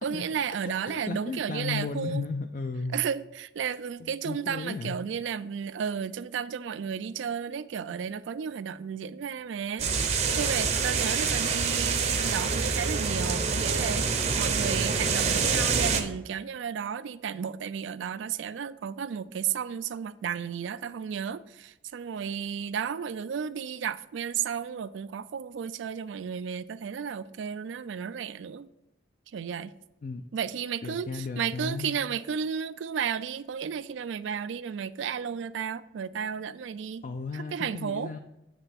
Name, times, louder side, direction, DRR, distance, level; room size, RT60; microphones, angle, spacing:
voice 1, 0.0-2.2 2.9-9.9 10.2-28.7 29.3-29.7 30.3-37.0 37.3-38.1, right 7 dB, 85° right, 0.3 m, -33 dB
voice 2, 0.6-3.0 4.0-5.0 30.0-30.2 30.8-32.0 37.0-38.2, left 4 dB, 45° left, 0.3 m, -35 dB
sound 1, 9.8-16.0, right 5 dB, 35° right, 0.6 m, -26 dB
8.8 x 3.3 x 5.8 m
head